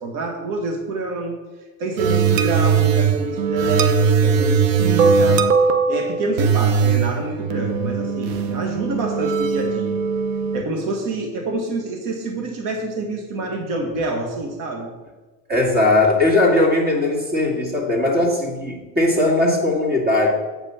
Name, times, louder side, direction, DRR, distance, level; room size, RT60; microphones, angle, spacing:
voice 1, 0.0-1.4 1.8-5.4 5.9-10.0 10.5-14.9, right 2 dB, 55° right, 2 dB, 1.6 m, -27 dB
sound 1, 2.0-10.6, right 6 dB, 90° right, 0.8 m, -19 dB
voice 2, 15.5-20.3, left 2 dB, 25° right, 0 dB, 2.1 m, -18 dB
8.1 x 5.5 x 5.7 m, 1.2 s
cardioid pair, 130°, 37 cm